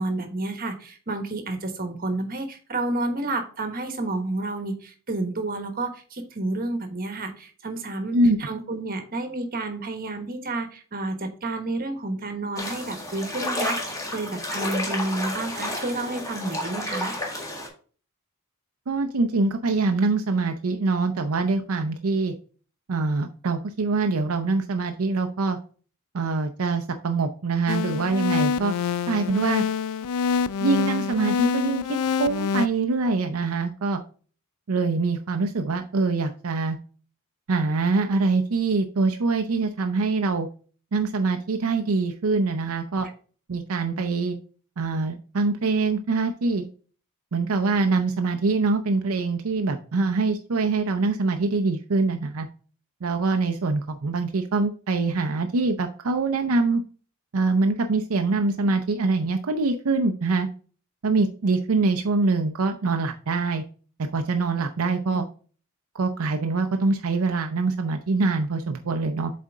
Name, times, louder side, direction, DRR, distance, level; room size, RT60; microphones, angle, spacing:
voice 1, 0.0-17.2 65.1-65.2, right 2 dB, 40° right, 6 dB, 1.1 m, -30 dB
sound 1, 12.6-17.7, left 1 dB, 15° left, 1.7 m, -31 dB
voice 2, 18.9-22.3 22.9-25.6 26.1-28.7 29.1-29.6 30.6-31.8 32.2-34.0 34.7-36.8 37.5-40.5 40.9-43.1 43.5-44.4 44.8-46.7 47.3-52.5 53.0-56.8 57.3-60.5 61.0-63.6 64.1-65.3 65.9-69.3, right 3 dB, 70° right, 6 dB, 0.6 m, -24 dB
sound 2, 27.7-32.7, left 6 dB, 85° left, 0.4 m, -26 dB
7.5 x 4.2 x 3.5 m, 0.40 s
head